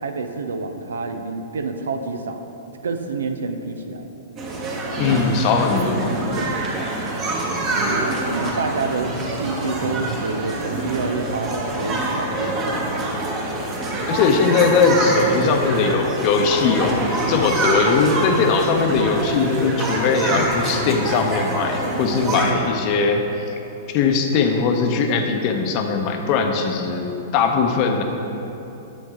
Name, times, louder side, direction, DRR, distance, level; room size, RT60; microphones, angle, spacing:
voice 1, 0.0-2.4 2.8-4.1 7.8-12.6, right 4 dB, 75° right, 7 dB, 0.5 m, -28 dB
sound 1, 4.4-22.5, right 2 dB, 30° right, 1.4 m, -25 dB
voice 2, 5.0-6.2 14.1-17.0 17.3-23.2 23.9-27.1 27.3-28.0, left 5 dB, 40° left, 4 dB, 0.8 m, -20 dB
8.5 x 6.4 x 3.7 m, 3.0 s
figure-of-eight pair, 105°, 0 cm